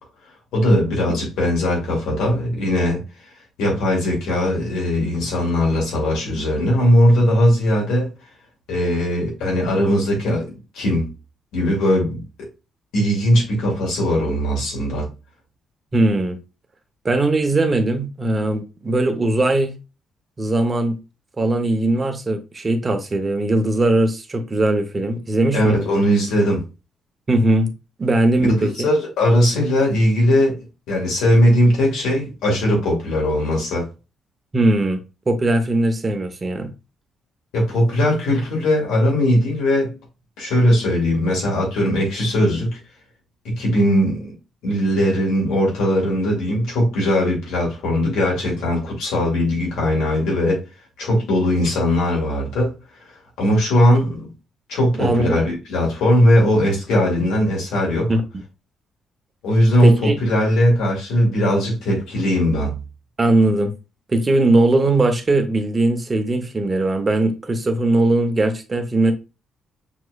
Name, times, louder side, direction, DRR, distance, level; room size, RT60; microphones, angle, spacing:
voice 1, 0.5-3.0 3.6-8.1 8.7-11.1 11.5-12.2 12.9-15.1 25.5-26.6 28.4-33.9 37.5-40.0 40.4-42.8 43.4-44.3 44.6-50.6 51.0-52.7 53.4-54.3 54.7-58.1 59.4-62.8, equal, 90° left, 2.3 m, -19 dB
voice 2, 15.9-16.4 17.0-19.8 20.4-21.0 21.4-25.9 27.3-27.7 28.0-28.9 34.5-36.7 54.9-55.4 58.1-58.2 59.8-60.2 63.2-63.7 64.1-69.1, right 2 dB, 30° right, 0.9 m, -19 dB
6.2 x 3.0 x 2.3 m
cardioid pair, 90°, 0 cm